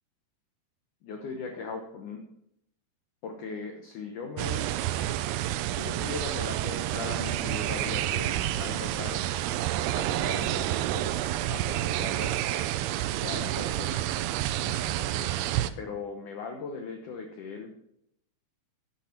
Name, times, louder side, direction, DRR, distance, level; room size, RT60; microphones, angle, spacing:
voice 1, 1.0-2.2 3.2-4.7 5.7-9.2 9.9-11.2 11.4-12.4 13.2-14.0 14.6-15.3 15.8-17.7, left 4 dB, 80° left, 4 dB, 1.8 m, -39 dB
sound 1, 4.4-15.7, right 13 dB, 80° right, 2.5 m, -29 dB
10.5 x 9.1 x 4.4 m, 0.75 s
omnidirectional pair, 5.0 m